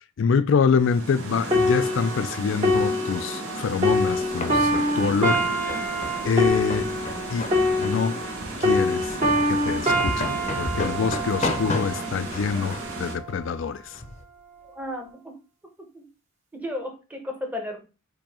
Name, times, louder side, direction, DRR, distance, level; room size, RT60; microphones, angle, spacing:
voice 1, 0.2-5.8 6.2-6.9 7.3-7.5 7.8-8.2 8.6-9.1 9.5-13.8, left 5 dB, 65° left, 0.4 m, -25 dB
sound 1, 0.8-13.2, right 2 dB, 80° right, 1.1 m, -35 dB
sound 2, 1.5-8.4 8.6-12.2 12.9-13.1, left 1 dB, 35° right, 1.4 m, -25 dB
sound 3, 3.8-14.2, left 2 dB, 35° left, 0.7 m, -34 dB
voice 2, 14.7-15.3 15.8-16.1 16.5-17.8, left 1 dB, 10° right, 1.0 m, -34 dB
4.5 x 2.8 x 4.2 m
head